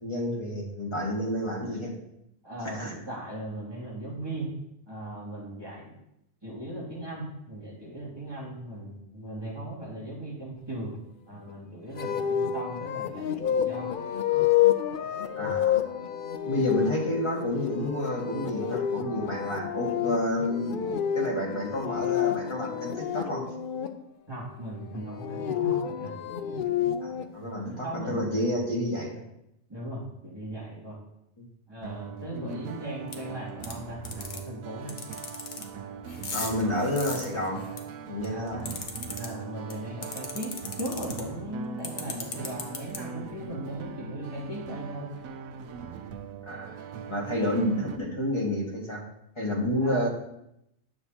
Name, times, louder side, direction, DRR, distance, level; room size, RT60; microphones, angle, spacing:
voice 1, 0.0-1.9 2.7-3.0 15.4-15.8 16.4-23.4 27.0-29.2 31.4-31.5 32.3-32.6 36.3-37.6 38.1-38.6 46.4-46.8 47.1-49.0 49.3-50.1, left 1 dB, 20° left, -2 dB, 1.6 m, -30 dB
voice 2, 2.4-4.5 4.9-5.9 6.4-11.0 11.3-13.9 15.4-15.6 24.3-26.6 27.7-28.6 29.7-31.0 31.7-35.0 36.3-36.4 38.3-38.8 39.2-45.1 49.8-50.1, right 1 dB, 20° right, -6 dB, 2.5 m, -38 dB
sound 1, 12.0-23.9 25.0-27.2, left 9 dB, 60° left, 0.5 m, -29 dB
sound 2, 31.8-48.0, right 7 dB, 85° right, 1.0 m, -41 dB
sound 3, 33.1-33.2 33.6-33.7 34.0-34.4 34.9-35.6 36.1-37.8 38.2-39.3 39.7-39.8 40.0-41.2 41.8-43.0, left 4 dB, 40° left, 0.9 m, -35 dB
9.7 x 6.6 x 2.8 m, 0.82 s
omnidirectional pair, 1.4 m